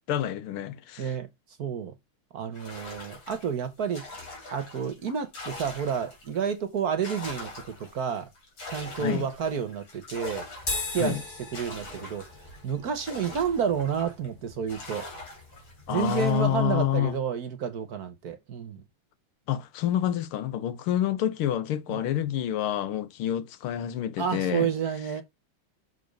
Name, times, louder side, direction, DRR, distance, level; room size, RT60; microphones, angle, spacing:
voice 1, 0.1-1.1 9.0-9.3 11.0-11.2 15.9-17.2 19.5-24.7, left 11 dB, 90° left, 1.8 m, -28 dB
voice 2, 1.6-1.9 2.3-4.0 4.5-7.5 7.8-8.3 8.7-10.5 10.9-11.2 11.5-12.2 12.6-15.1 15.9-18.8 21.9-22.0 24.2-25.2, right 7 dB, 55° right, 1.2 m, -30 dB
sound 1, 2.5-6.4 6.8-14.3 14.7-16.6, left 2 dB, 65° left, 3.8 m, -43 dB
sound 2, 10.6-17.2, left 3 dB, 30° left, 4.7 m, -40 dB
6.8 x 3.7 x 5.2 m
omnidirectional pair, 2.3 m